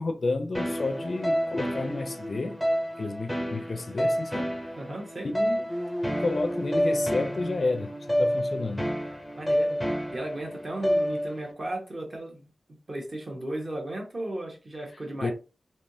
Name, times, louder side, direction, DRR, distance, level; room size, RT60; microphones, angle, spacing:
voice 1, 0.0-2.6 3.0-4.5 5.3-5.7 6.2-8.9 15.2-15.3, left 3 dB, 50° left, 0.4 m, -30 dB
sound 1, 0.5-11.5, equal, ahead, 0.6 m, -29 dB
voice 2, 4.8-5.3 9.4-9.8 10.1-12.4 12.9-15.3, right 1 dB, 35° right, 1.0 m, -35 dB
3.4 x 2.7 x 2.6 m
wide cardioid pair, 135°, 0 cm